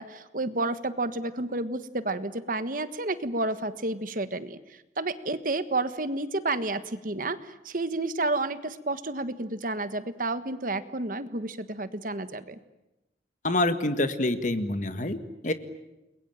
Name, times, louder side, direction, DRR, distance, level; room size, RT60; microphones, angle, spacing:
voice 1, 0.0-12.6, right 2 dB, 50° right, 12 dB, 1.4 m, -31 dB
voice 2, 13.4-15.5, left 2 dB, 45° left, 10 dB, 1.8 m, -27 dB
29.5 x 22.0 x 9.1 m, 0.97 s
head